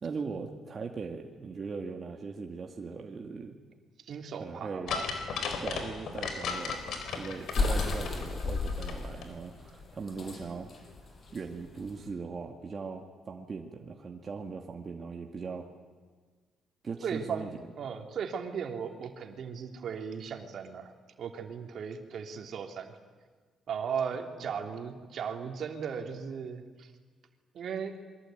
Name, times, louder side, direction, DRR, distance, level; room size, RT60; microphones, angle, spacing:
voice 1, 0.0-3.6 4.4-4.9 5.6-10.7 11.3-15.7 16.8-17.5 24.3-24.4, right 4 dB, 40° right, 2 dB, 2.1 m, -39 dB
voice 2, 4.0-5.1 17.0-20.9 21.2-23.0 23.7-26.9 27.5-27.9, right 7 dB, 60° right, 4 dB, 3.2 m, -37 dB
sound 1, 4.9-9.0 9.2-9.3, left 5 dB, 70° left, 4.5 m, -35 dB
sound 2, 6.5-12.1, left 3 dB, 45° left, 6.3 m, -33 dB
27.5 x 23.5 x 9.3 m, 1.5 s
cardioid pair, 90°, 0 cm